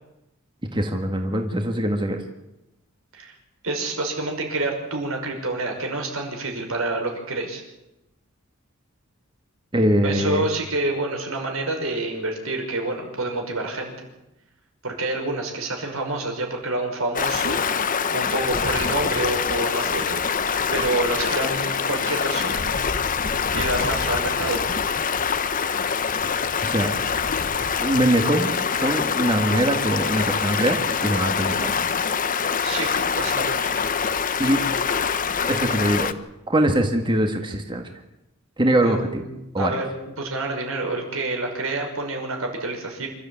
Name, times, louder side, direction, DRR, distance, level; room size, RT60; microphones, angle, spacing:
voice 1, 0.7-2.2 9.7-10.4 26.6-26.9 27.8-31.7 34.4-34.6 35.5-36.1 36.5-37.8 38.6-39.2 39.5-39.8, right 1 dB, 25° right, 4 dB, 1.8 m, -22 dB
voice 2, 3.6-7.6 10.0-13.9 14.8-17.6 18.1-20.2 20.7-22.6 23.5-24.6 32.6-32.9 33.1-33.8 38.8-43.1, right 2 dB, 85° right, 2 dB, 5.9 m, -28 dB
Stream, 17.1-36.1, left 6 dB, 40° left, 1.0 m, -24 dB
26.5 x 13.5 x 8.8 m, 0.94 s
head